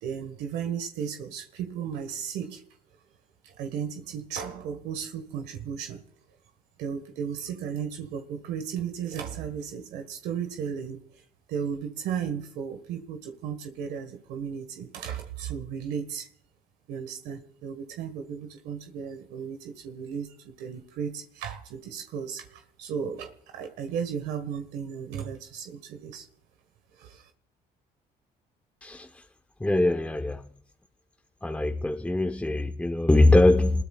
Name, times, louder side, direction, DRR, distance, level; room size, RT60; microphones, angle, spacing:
voice 1, 0.0-2.6 3.4-6.0 6.8-11.2 11.5-16.3 16.9-26.3 27.0-27.3, right 7 dB, 85° right, 1.7 m, -35 dB
voice 2, 29.6-30.4 31.4-33.8, left 2 dB, 10° left, 1.0 m, -22 dB
27.5 x 21.0 x 2.5 m
cardioid pair, 110°, 17 cm